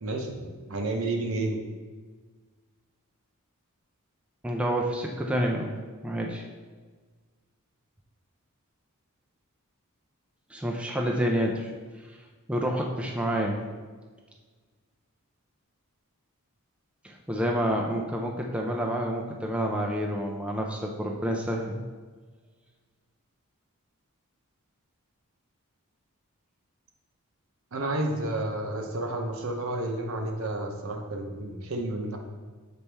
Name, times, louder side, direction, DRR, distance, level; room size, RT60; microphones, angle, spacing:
voice 1, 0.0-1.6 27.7-32.2, right 2 dB, 70° right, 3 dB, 0.8 m, -31 dB
voice 2, 4.4-5.7 6.0-6.4 10.5-11.7 12.5-13.7 17.0-21.8, equal, 5° right, -1 dB, 0.4 m, -28 dB
6.9 x 4.2 x 3.4 m, 1.4 s
head